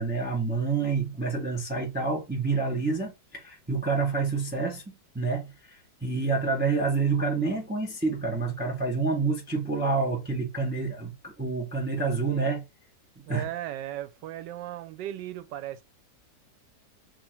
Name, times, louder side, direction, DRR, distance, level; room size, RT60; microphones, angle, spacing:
voice 1, 0.0-4.8 5.1-12.6 13.2-13.4, right 4 dB, 10° right, 0.6 m, -28 dB
voice 2, 13.3-15.8, right 13 dB, 85° right, 1.2 m, -36 dB
2.9 x 2.5 x 4.2 m
omnidirectional pair, 1.9 m